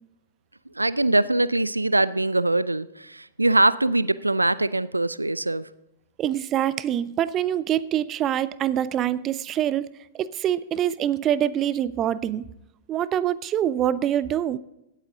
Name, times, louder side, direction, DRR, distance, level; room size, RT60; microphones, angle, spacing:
voice 1, 0.8-5.7, right 2 dB, 85° right, 18 dB, 0.4 m, -22 dB
voice 2, 6.2-9.9 10.1-12.5 12.9-14.6, right 11 dB, 30° right, 18 dB, 0.5 m, -25 dB
17.0 x 8.3 x 3.8 m, 0.89 s
figure-of-eight pair, 105°, 0 cm